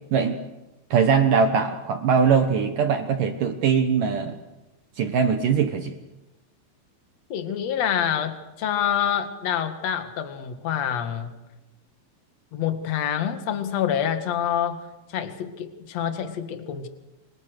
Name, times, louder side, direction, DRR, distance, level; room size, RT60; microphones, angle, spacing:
voice 1, 0.9-4.4 5.0-6.0, right 6 dB, 70° right, 7 dB, 2.0 m, -21 dB
voice 2, 7.3-11.3 12.5-14.8 15.1-16.9, left 9 dB, 50° left, 7 dB, 2.3 m, -27 dB
29.5 x 25.5 x 6.6 m, 0.97 s
omnidirectional pair, 5.5 m